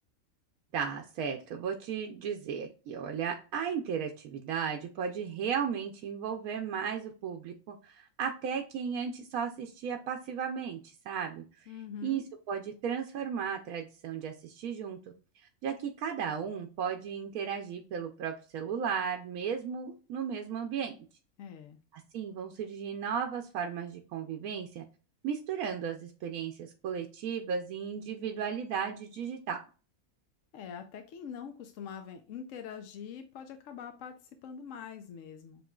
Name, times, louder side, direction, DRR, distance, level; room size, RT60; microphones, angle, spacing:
voice 1, 0.7-11.4 12.0-15.0 15.6-21.0 21.9-24.8 25.2-29.6, right 7 dB, 85° right, 3 dB, 1.1 m, -35 dB
voice 2, 11.7-12.2 21.4-21.8 30.5-35.6, left 7 dB, 70° left, 7 dB, 0.9 m, -44 dB
7.7 x 3.1 x 2.3 m, 0.35 s
omnidirectional pair, 1.5 m